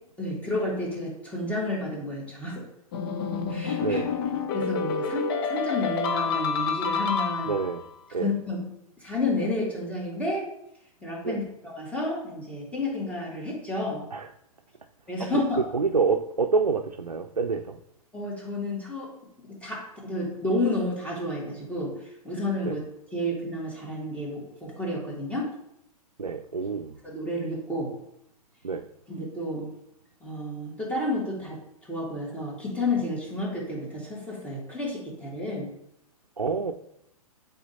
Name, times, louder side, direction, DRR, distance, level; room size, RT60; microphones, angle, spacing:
voice 1, 0.2-2.6 3.5-4.0 4.5-7.5 8.2-10.5 11.0-14.0 15.1-15.6 18.1-19.1 19.4-22.8 23.1-25.5 27.0-27.9 29.1-29.7 30.2-31.6 31.8-35.7, left 2 dB, 5° left, -4 dB, 2.2 m, -31 dB
sound 1, 2.9-7.8, left 6 dB, 40° left, 0.8 m, -28 dB
voice 2, 3.8-4.1 7.5-7.8 8.1-8.3 11.2-11.4 14.1-14.3 15.3-17.8 22.6-22.8 26.2-27.0 28.6-28.9 36.4-36.7, right 5 dB, 85° right, 6 dB, 0.5 m, -27 dB
8.3 x 4.2 x 2.8 m, 0.80 s
figure-of-eight pair, 110°, 19 cm